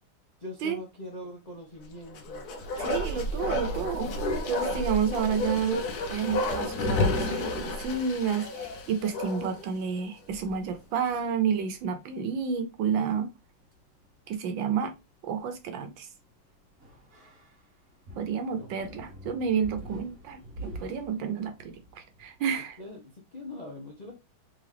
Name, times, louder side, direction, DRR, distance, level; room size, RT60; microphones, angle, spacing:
voice 1, 0.4-2.5 18.6-18.7 22.8-24.2, left 1 dB, 45° left, 0.5 m, -42 dB
Bark, 2.1-9.7 10.0-10.1, left 2 dB, 60° left, 1.1 m, -30 dB
voice 2, 2.8-4.1 4.5-13.3 14.3-14.9 15.2-16.1 18.2-22.8, right 7 dB, 70° right, 1.4 m, -30 dB
sound 1, 8.6-22.9, right 1 dB, 35° right, 1.1 m, -49 dB
3.8 x 3.4 x 3.3 m
omnidirectional pair, 2.3 m